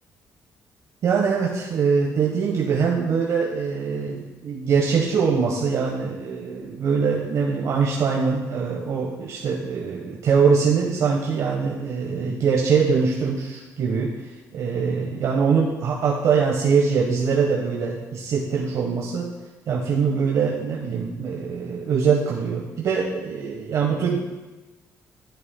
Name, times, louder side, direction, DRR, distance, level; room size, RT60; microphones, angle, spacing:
voice 1, 1.0-19.3 19.7-24.2, right 5 dB, 65° right, -2 dB, 1.3 m, -23 dB
13.0 x 8.4 x 2.3 m, 1.1 s
cardioid pair, 105°, 6 cm